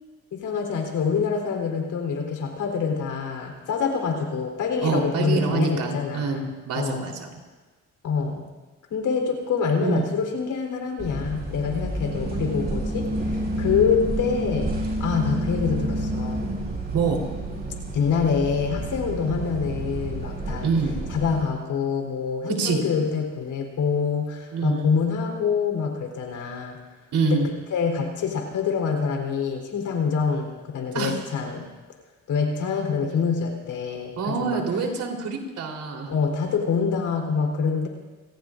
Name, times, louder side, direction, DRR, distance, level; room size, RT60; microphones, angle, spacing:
voice 1, 0.3-7.1 8.0-8.5 8.9-14.7 15.0-16.5 17.9-20.7 21.1-26.8 27.2-27.4 27.7-31.7 32.3-34.6 36.1-37.9, left 5 dB, 75° left, 2 dB, 3.8 m, -26 dB
voice 2, 4.8-7.3 9.8-10.0 16.9-17.2 20.6-20.9 22.5-22.8 24.5-24.9 27.1-27.5 30.9-31.2 34.2-36.1, right 5 dB, 75° right, 1 dB, 3.8 m, -26 dB
sound 1, 11.0-21.4, right 1 dB, 30° right, 7.0 m, -29 dB
30.0 x 18.5 x 2.6 m, 1.2 s
cardioid pair, 90°, 30 cm